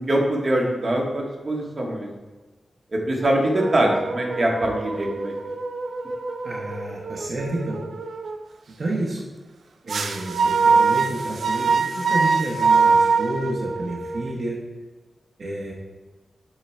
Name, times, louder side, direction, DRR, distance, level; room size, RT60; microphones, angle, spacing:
voice 1, 0.0-2.1 2.9-5.3, right 1 dB, 35° right, -1 dB, 1.2 m, -23 dB
sound 1, 3.2-8.4 9.9-14.3, right 4 dB, 75° right, 0.5 m, -23 dB
voice 2, 6.4-7.8 8.8-9.2 9.8-14.6 15.4-15.7, right 1 dB, 55° right, -3 dB, 1.0 m, -30 dB
8.1 x 3.7 x 4.4 m, 1.3 s
wide cardioid pair, 145°, 0 cm